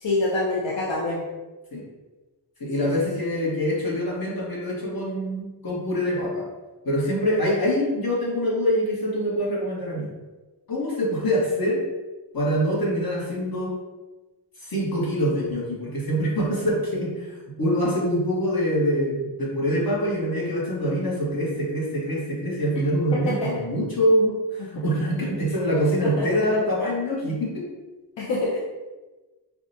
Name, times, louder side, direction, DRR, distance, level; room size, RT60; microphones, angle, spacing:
voice 1, 0.0-1.2 2.8-2.9 23.1-23.5 26.0-26.3 28.2-28.6, left 2 dB, 85° left, -5 dB, 0.7 m, -25 dB
voice 2, 2.6-6.4 6.8-10.1 10.7-11.8 12.3-13.7 14.6-27.7, equal, 55° left, -5 dB, 1.3 m, -25 dB
4.9 x 2.3 x 2.7 m, 1.2 s
wide cardioid pair, 85°, 42 cm